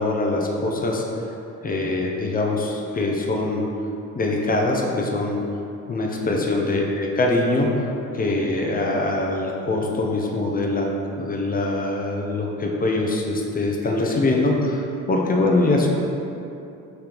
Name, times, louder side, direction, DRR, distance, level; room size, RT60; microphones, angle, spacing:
voice 1, 0.0-1.3 1.6-3.6 4.1-5.4 5.9-10.9 11.1-15.9, left 2 dB, 20° left, -1 dB, 0.6 m, -23 dB
3.2 x 2.9 x 3.8 m, 2.7 s
figure-of-eight pair, 45°, 44 cm